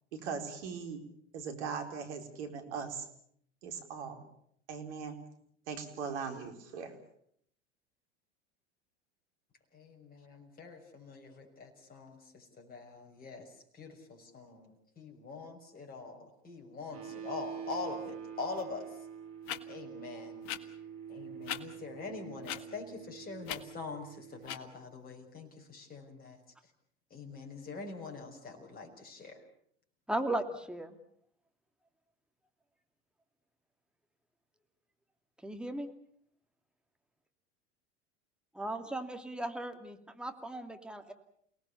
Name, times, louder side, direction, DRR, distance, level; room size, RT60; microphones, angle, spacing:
voice 1, 0.1-1.0 1.3-3.1 3.6-4.2 4.7-5.2 5.7-6.9, right 6 dB, 70° right, 6 dB, 4.5 m, -39 dB
voice 2, 9.7-18.9 19.7-20.7 21.1-26.4 27.1-29.4, left 3 dB, 25° left, 1 dB, 6.3 m, -44 dB
sound 1, 16.9-24.5, right 8 dB, 40° right, 6.5 m, -46 dB
sound 2, 18.6-18.7 19.4-19.6 20.4-20.6 21.4-21.6 22.4-22.6 23.4-23.6 24.4-24.6, left 11 dB, 50° left, 1.9 m, -38 dB
voice 3, 30.1-31.0 35.4-35.9 38.5-41.1, right 1 dB, 5° right, 5 dB, 2.7 m, -37 dB
29.0 x 19.0 x 7.1 m, 0.67 s
hypercardioid pair, 85°, 35 cm